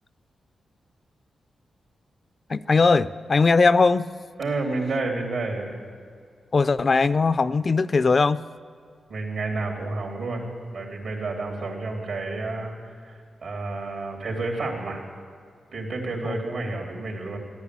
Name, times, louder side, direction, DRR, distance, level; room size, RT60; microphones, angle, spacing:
voice 1, 2.5-4.1 6.5-8.4 16.3-16.4, left 4 dB, 40° left, 14 dB, 0.4 m, -20 dB
voice 2, 4.4-5.8 9.1-12.8 13.0-15.1 15.7-17.4, right 3 dB, 75° right, 0 dB, 3.4 m, -30 dB
15.0 x 10.5 x 8.4 m, 2.2 s
cardioid pair, 90°, 0 cm